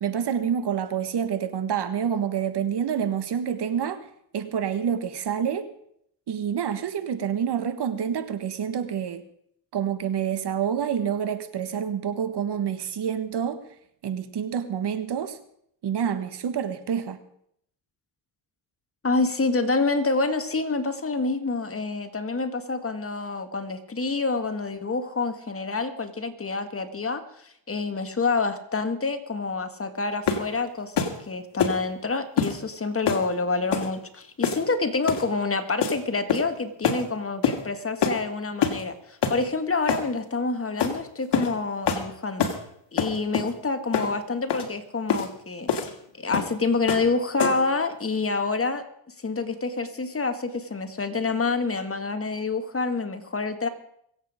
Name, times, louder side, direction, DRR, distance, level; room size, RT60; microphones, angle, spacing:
voice 1, 0.0-4.0 4.3-5.7 6.3-9.2 9.7-13.7 14.0-15.4 15.8-17.2, right 8 dB, 55° right, 1.5 m, -27 dB
voice 2, 19.0-42.5 42.9-45.9 46.2-48.8 49.2-53.7, left 3 dB, 30° left, 1.7 m, -27 dB
sound 1, 30.3-30.5 31.0-31.2 31.6-31.8 32.4-32.6 33.1-33.3 33.7-33.9 34.4-34.7 35.1-35.3 35.8-36.0 36.3-36.6 36.8-37.0 37.4-37.6 38.0-38.2 38.6-38.8 39.2-39.4 39.9-40.1 40.8-41.0 41.3-41.5 41.9-42.1 42.4-42.6 43.0-43.5 43.9-44.1 44.5-44.7 45.1-45.3 45.7-45.9 46.3-46.5 46.9-47.1 47.4-47.7, left 6 dB, 60° left, 2.2 m, -25 dB
23.5 x 8.3 x 5.0 m
cardioid pair, 80°, 47 cm